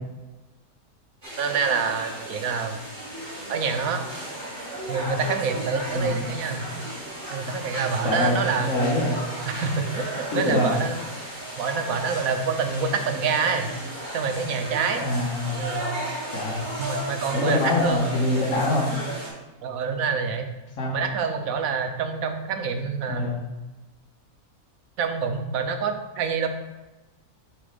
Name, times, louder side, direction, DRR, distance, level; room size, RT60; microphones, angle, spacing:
sound 1, 1.2-19.3, right 1 dB, 30° right, 2.4 m, -35 dB
voice 1, 1.4-2.8 3.5-4.1 4.9-6.7 7.3-8.8 9.5-11.0 11.6-13.7 14.1-15.1 15.6-15.9 16.8-18.1 19.6-20.5 20.9-23.4 25.0-26.5, right 5 dB, 75° right, 6 dB, 1.2 m, -27 dB
voice 2, 8.0-9.2 10.3-10.7 15.0-15.6 16.3-16.6 17.3-18.9 20.8-21.0 23.1-23.4, left 2 dB, 70° left, -6 dB, 1.8 m, -24 dB
7.6 x 3.9 x 5.1 m, 1.1 s
omnidirectional pair, 1.5 m